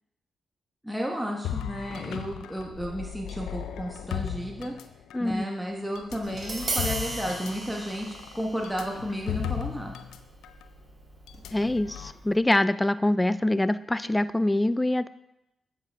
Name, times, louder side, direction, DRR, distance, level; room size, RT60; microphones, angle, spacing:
voice 1, 0.8-4.7 5.2-9.9, equal, 5° right, -1 dB, 1.2 m, -33 dB
sound 1, 1.4-5.3 6.0-10.2 10.4-10.6 11.3-12.1, left 10 dB, 85° left, 0.4 m, -36 dB
voice 2, 5.1-5.4 11.5-15.1, left 1 dB, 15° left, 15 dB, 0.3 m, -24 dB
Tap, 6.2-12.4, right 2 dB, 50° right, 2.4 m, -38 dB
8.1 x 6.6 x 3.5 m, 0.88 s
supercardioid pair, 50°, 0 cm